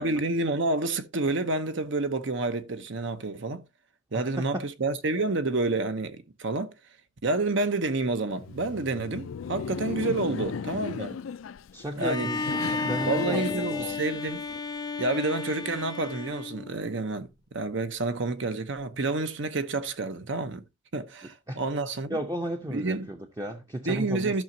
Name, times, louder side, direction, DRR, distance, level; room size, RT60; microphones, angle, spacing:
voice 1, 0.0-3.6 4.1-6.7 7.2-11.2 12.0-12.3 13.1-14.4 15.0-20.6 20.9-22.2 22.7-23.1 23.9-24.4, right 2 dB, 65° right, 0.9 m, -29 dB
voice 2, 4.1-4.6 11.7-14.0 21.2-21.6 22.1-24.4, right 1 dB, 20° right, 0.7 m, -35 dB
Laughter, 8.3-14.6, left 6 dB, 75° left, 0.4 m, -36 dB
Bowed string instrument, 12.0-17.0, left 3 dB, 20° left, 0.6 m, -33 dB
14.0 x 6.0 x 2.7 m
head